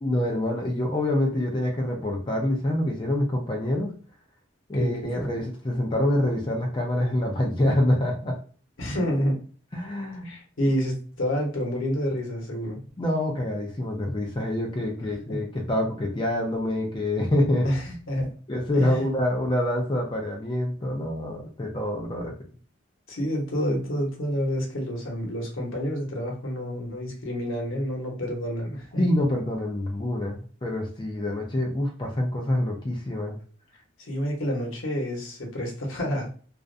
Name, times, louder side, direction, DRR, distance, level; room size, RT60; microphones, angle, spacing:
voice 1, 0.0-4.0 4.7-8.4 9.7-10.3 13.0-18.0 18.5-22.4 29.0-33.4, left 1 dB, 25° left, 0 dB, 0.4 m, -26 dB
voice 2, 4.8-5.3 8.8-9.4 10.2-12.8 15.3-15.4 17.6-18.3 18.7-19.1 23.1-29.1 34.0-36.4, equal, 80° left, 0 dB, 0.9 m, -28 dB
2.4 x 2.1 x 2.5 m, 0.41 s
head